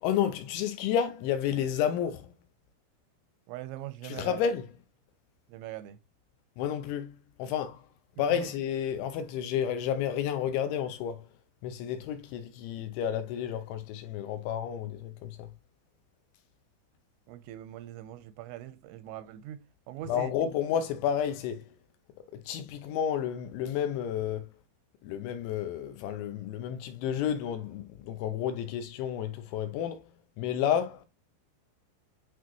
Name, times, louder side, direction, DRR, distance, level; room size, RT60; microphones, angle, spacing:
voice 1, 0.0-2.3 4.0-4.7 6.6-7.9 8.2-11.3 11.6-15.5 20.1-21.7 22.4-24.5 25.0-30.1 30.4-31.1, left 9 dB, 80° left, 2.8 m, -31 dB
voice 2, 3.5-4.5 5.5-6.0 8.3-8.5 17.3-20.3, right 13 dB, 90° right, 3.4 m, -42 dB
9.2 x 4.1 x 3.0 m
omnidirectional pair, 5.8 m